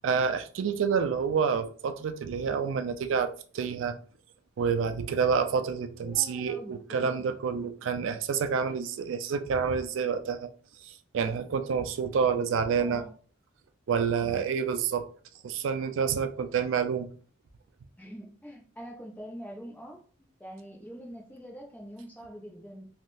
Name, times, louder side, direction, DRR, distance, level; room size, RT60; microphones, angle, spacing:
voice 1, 0.0-3.9 4.6-10.5 11.1-13.0 13.9-15.1 15.4-17.1, right 6 dB, 85° right, 0.4 m, -28 dB
voice 2, 6.0-7.3 12.8-13.1 14.2-14.5 17.9-20.0 20.4-22.9, equal, 10° left, 0.6 m, -44 dB
3.5 x 2.3 x 2.6 m
head